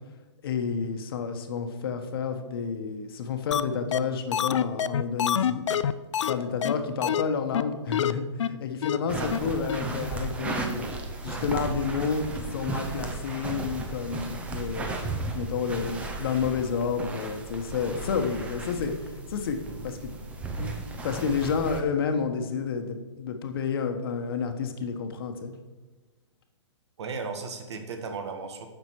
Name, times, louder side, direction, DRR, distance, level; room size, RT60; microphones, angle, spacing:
voice 1, 0.4-5.6 6.3-10.8 11.2-19.6 19.8-20.0 20.5-25.5, left 6 dB, 50° left, 6 dB, 1.3 m, -30 dB
sound 1, 3.5-3.6 3.9-4.0 4.3-6.3 6.6-6.7 7.0-7.2 7.5-7.6 7.9-8.1 8.4-8.5 8.8-9.0 9.3-9.4 9.7-9.8, left 9 dB, 75° left, 0.5 m, -25 dB
sound 2, 9.1-21.8, right 3 dB, 10° right, 0.7 m, -35 dB
voice 2, 27.0-28.7, right 4 dB, 65° right, 6 dB, 1.7 m, -35 dB
10.0 x 6.7 x 4.7 m, 1.2 s
hypercardioid pair, 160°, 16 cm